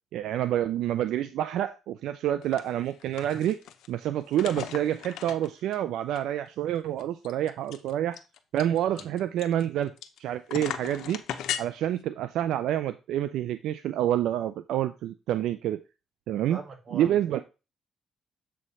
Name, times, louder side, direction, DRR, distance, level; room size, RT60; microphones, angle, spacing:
voice 1, 0.1-3.6 3.9-8.2 8.5-9.9 10.2-11.2 11.6-15.8 16.3-16.6 16.9-17.4, right 11 dB, 85° right, 0.4 m, -28 dB
sound 1, 2.4-2.6 2.9-3.9 4.3-5.8 6.2-6.3 6.5-6.6 7.0-10.2 10.5-11.6, left 10 dB, 85° left, 0.7 m, -37 dB
voice 2, 16.5-17.4, right 5 dB, 45° right, 1.8 m, -42 dB
7.5 x 3.2 x 5.5 m
cardioid pair, 90°, 0 cm